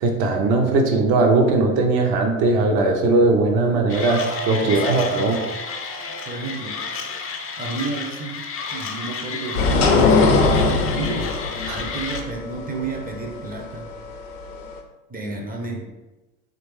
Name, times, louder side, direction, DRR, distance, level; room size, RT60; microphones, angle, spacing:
voice 1, 0.0-4.2 4.5-5.4 11.7-11.8, right 3 dB, 55° right, 2 dB, 0.8 m, -19 dB
Mechanisms, 3.9-12.2, left 5 dB, 30° left, 0.5 m, -32 dB
sound 1, 4.2-8.5, right 4 dB, 85° right, 1.2 m, -36 dB
voice 2, 4.6-5.3 6.3-6.8 7.6-8.4 8.7-11.3 11.7-13.9 15.1-15.9, right 3 dB, 20° right, 0 dB, 0.6 m, -31 dB
sound 2, 9.5-14.8, left 3 dB, 80° left, 0.6 m, -20 dB
3.0 x 2.5 x 3.0 m, 1.1 s
hypercardioid pair, 65°, 43 cm